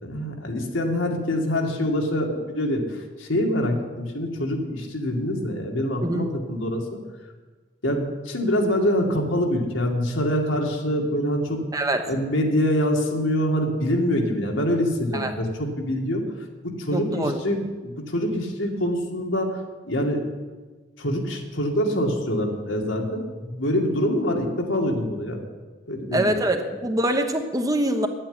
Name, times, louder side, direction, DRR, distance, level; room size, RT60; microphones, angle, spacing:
voice 1, 0.0-2.8 3.2-6.8 7.8-11.6 12.1-16.2 16.6-17.6 17.8-19.6 19.9-20.2 21.0-25.4 25.9-26.3, equal, 75° left, 1 dB, 2.2 m, -25 dB
voice 2, 11.7-12.1 15.1-15.3 16.9-17.4 26.1-28.1, right 1 dB, 20° right, 6 dB, 1.0 m, -24 dB
10.0 x 8.9 x 9.8 m, 1.3 s
head